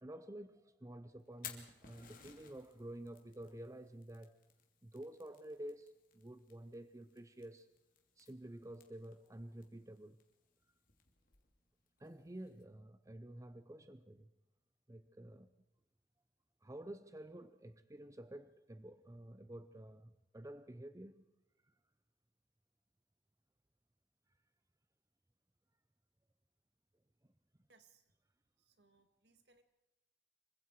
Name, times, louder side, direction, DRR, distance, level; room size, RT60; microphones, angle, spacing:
voice 1, 0.0-4.4 4.8-7.7 8.2-10.2 12.0-14.3 14.9-15.5 16.6-21.2, right 1 dB, 20° right, 0.7 m, -51 dB
Fire, 1.2-12.6, left 8 dB, 55° left, 2.9 m, -59 dB
voice 2, 27.7-28.1 28.6-29.6, right 4 dB, 70° right, 2.1 m, -69 dB
26.5 x 24.0 x 4.8 m
head